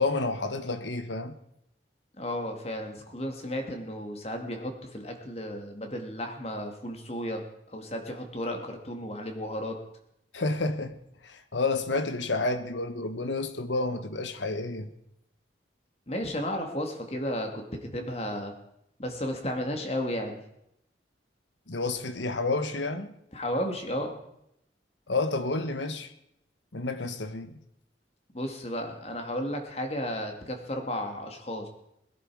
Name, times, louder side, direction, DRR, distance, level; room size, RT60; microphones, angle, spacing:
voice 1, 0.0-1.3 10.3-11.0 11.2-14.9 21.7-23.1 25.1-26.1 26.7-27.5, left 3 dB, 85° left, 1.3 m, -30 dB
voice 2, 2.2-9.8 16.1-18.5 19.0-20.4 23.3-24.1 28.3-31.7, equal, 35° left, 2.3 m, -33 dB
21.0 x 10.5 x 4.8 m
head